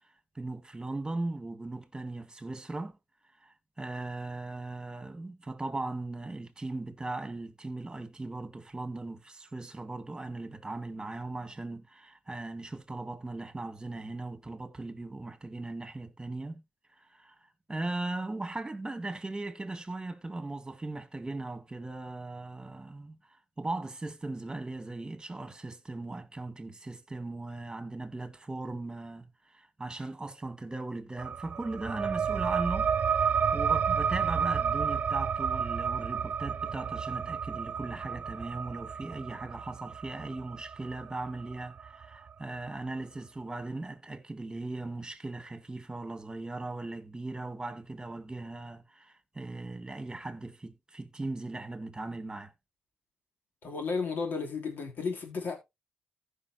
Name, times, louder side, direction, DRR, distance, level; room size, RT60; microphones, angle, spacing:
voice 1, 0.4-3.0 3.4-16.6 17.0-17.4 17.7-32.9 33.2-52.5, right 2 dB, 20° right, 1.9 m, -38 dB
sound 1, 31.2-42.3, right 7 dB, 55° right, 0.4 m, -31 dB
voice 2, 53.6-55.5, left 4 dB, 70° left, 3.2 m, -33 dB
15.0 x 5.6 x 2.8 m
cardioid pair, 70°, 3 cm